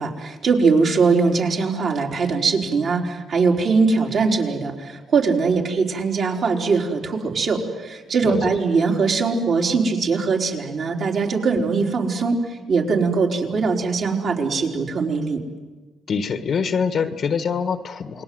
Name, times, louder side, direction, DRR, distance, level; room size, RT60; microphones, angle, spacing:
voice 1, 0.0-12.4 12.7-15.4, right 4 dB, 60° right, 0 dB, 4.0 m, -21 dB
voice 2, 16.1-18.2, left 6 dB, 60° left, 8 dB, 1.5 m, -24 dB
28.5 x 20.5 x 7.9 m, 1.3 s
cardioid pair, 90°, 0 cm